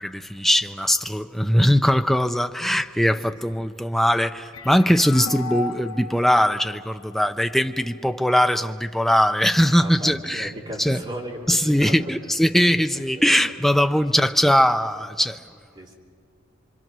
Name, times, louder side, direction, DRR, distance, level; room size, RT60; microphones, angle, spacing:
voice 1, 0.0-10.5 10.8-11.0 11.5-15.4, equal, ahead, 7 dB, 0.6 m, -20 dB
sound 1, 4.5-8.0, left 3 dB, 85° left, 0.9 m, -36 dB
voice 2, 9.8-12.1 13.1-13.4 13.8-14.2 15.7-15.9, right 1 dB, 25° right, -2 dB, 3.0 m, -36 dB
25.5 x 25.5 x 6.2 m, 2.2 s
head